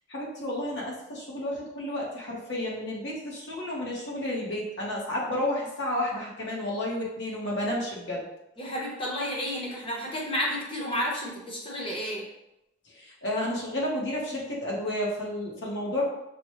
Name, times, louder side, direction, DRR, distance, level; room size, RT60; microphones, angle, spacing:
voice 1, 0.1-8.2 12.8-16.0, left 1 dB, 65° left, -4 dB, 1.2 m, -31 dB
voice 2, 8.6-12.2, equal, 30° left, -3 dB, 0.9 m, -31 dB
6.0 x 2.3 x 3.0 m, 0.88 s
head